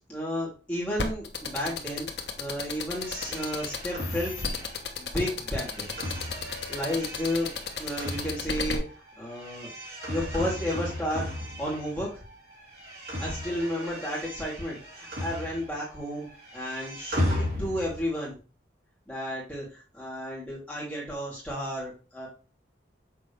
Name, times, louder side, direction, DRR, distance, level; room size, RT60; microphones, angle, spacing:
voice 1, 0.1-4.6 5.0-5.9 6.5-7.5 7.8-8.8 9.2-9.7 10.1-11.3 11.6-12.1 13.2-16.3 16.5-18.4 19.1-22.3, equal, 5° left, -7 dB, 2.9 m, -32 dB
sound 1, 1.0-8.8, left 5 dB, 65° left, 1.1 m, -32 dB
sound 2, 2.9-12.2 12.5-15.9 16.2-18.1, left 1 dB, 60° right, 3.0 m, -36 dB
6.7 x 4.3 x 3.4 m, 0.34 s
head